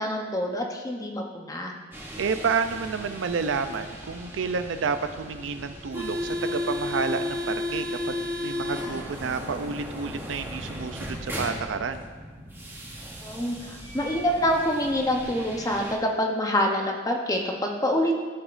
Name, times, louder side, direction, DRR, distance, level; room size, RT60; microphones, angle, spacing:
voice 1, 0.0-1.7 13.2-13.6 13.9-18.1, equal, 20° left, 1 dB, 0.8 m, -26 dB
sound 1, 1.9-16.0, left 1 dB, 10° right, 1.0 m, -35 dB
voice 2, 2.2-12.1, right 5 dB, 85° right, 9 dB, 0.5 m, -30 dB
14.5 x 5.0 x 2.5 m, 1.5 s
head